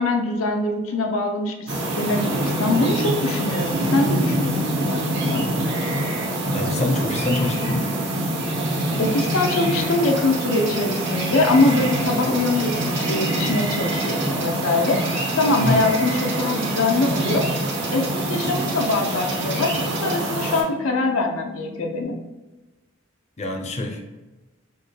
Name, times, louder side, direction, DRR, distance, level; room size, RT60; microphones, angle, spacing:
voice 1, 0.0-5.5 9.0-17.4 17.9-22.2, left 2 dB, 80° left, 3 dB, 0.5 m, -23 dB
sound 1, 1.7-20.6, right 1 dB, 60° right, 0.9 m, -25 dB
voice 2, 6.5-7.9 15.6-15.9 23.4-24.0, left 2 dB, 35° left, 2 dB, 0.5 m, -25 dB
sound 2, 12.9-22.0, left 2 dB, 20° right, 0.4 m, -42 dB
4.3 x 2.2 x 3.2 m, 1.2 s
head